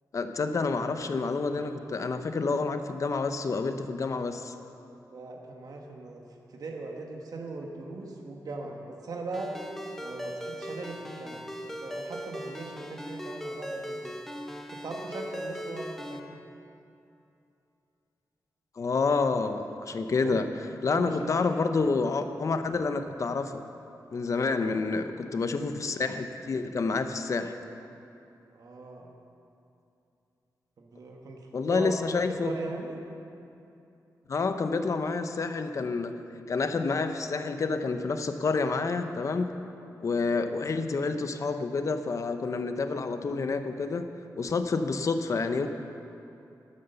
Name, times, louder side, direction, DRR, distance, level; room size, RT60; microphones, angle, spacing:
voice 1, 0.1-4.5 18.8-20.5 20.8-23.6 24.1-27.5 31.5-32.5 34.3-36.1 36.5-39.6 40.0-44.1 44.4-45.7, left 4 dB, 50° left, 8 dB, 0.8 m, -28 dB
voice 2, 5.1-6.2 6.5-9.6 10.0-14.2 14.7-16.2 20.2-20.4 20.9-22.0 24.6-24.8 28.5-29.1 30.8-31.9 32.4-33.0, right 3 dB, 65° right, 1 dB, 1.5 m, -40 dB
Ringtone, 9.3-16.2, equal, 5° left, 0.9 m, -39 dB
12.5 x 11.0 x 6.9 m, 2.7 s
wide cardioid pair, 140°, 7 cm